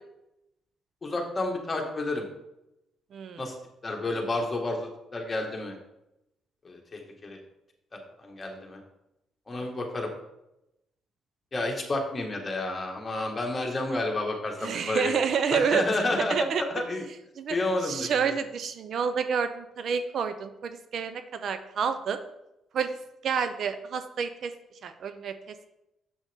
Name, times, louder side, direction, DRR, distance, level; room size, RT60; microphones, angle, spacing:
voice 1, 1.0-2.2 3.4-3.5 3.8-5.8 6.6-7.4 7.9-8.8 9.5-10.1 11.5-15.1 15.5-16.4 16.7-17.0 17.5-18.3, left 2 dB, 30° left, 1 dB, 1.8 m, -30 dB
voice 2, 3.1-3.4 14.6-15.9 16.3-16.6 17.4-17.6 17.8-22.2 22.7-23.0 23.2-24.5 24.8-25.3, right 6 dB, 60° right, 10 dB, 0.6 m, -28 dB
7.3 x 7.1 x 3.6 m, 0.88 s
cardioid pair, 90°, 0 cm